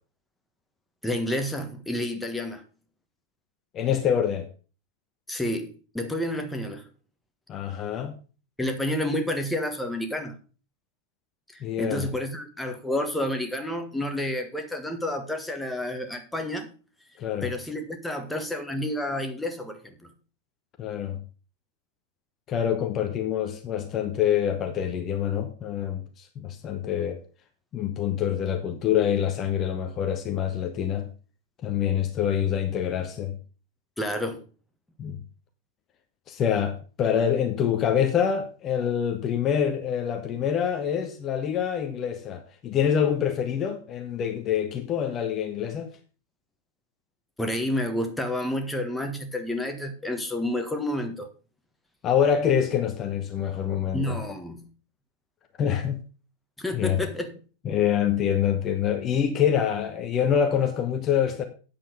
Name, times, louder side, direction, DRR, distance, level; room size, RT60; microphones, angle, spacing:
voice 1, 1.0-2.6 5.3-6.9 8.6-10.3 11.5-16.7 17.4-20.1 34.0-34.4 47.4-51.3 53.9-54.7 56.6-57.4, left 1 dB, 5° left, 1.6 m, -30 dB
voice 2, 3.7-4.5 7.5-8.2 11.6-12.1 17.2-17.5 20.8-21.2 22.5-27.2 27.7-31.1 31.6-33.4 35.0-35.2 36.3-45.9 52.0-54.2 55.6-56.0 56.7-57.0 57.6-61.4, left 9 dB, 30° left, 1.2 m, -26 dB
8.9 x 7.6 x 5.2 m
figure-of-eight pair, 90°, 0 cm